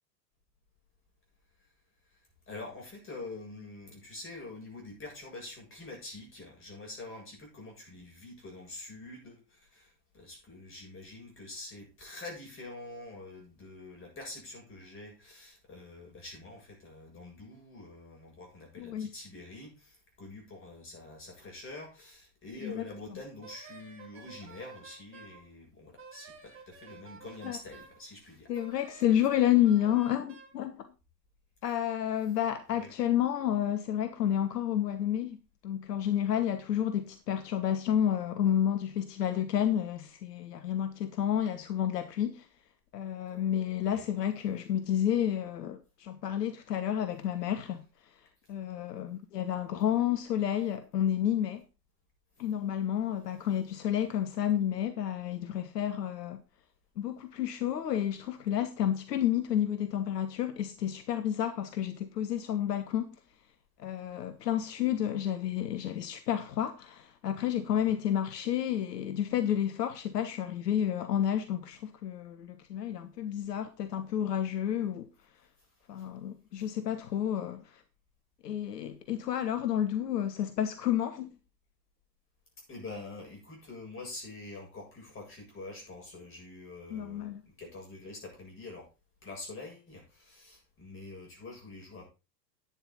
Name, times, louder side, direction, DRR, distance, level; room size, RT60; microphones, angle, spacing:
voice 1, 2.5-28.5 32.7-32.9 43.8-44.1 67.7-68.0 76.0-76.1 82.7-88.9 89.2-92.0, left 2 dB, 25° left, 7.7 m, -46 dB
voice 2, 18.8-19.1 22.6-22.8 27.4-27.6 28.5-30.9 31.6-35.4 35.6-42.5 42.9-47.8 48.5-51.6 52.4-56.4 57.0-63.1 63.8-75.1 75.9-77.8 78.4-81.3 86.9-87.4, left 10 dB, 70° left, 1.2 m, -30 dB
Wind instrument woodwind instrument, 23.4-25.4 26.0-28.0 28.5-30.6, right 5 dB, 25° right, 4.0 m, -51 dB
11.0 x 9.0 x 4.0 m
figure-of-eight pair, 95°, 50 cm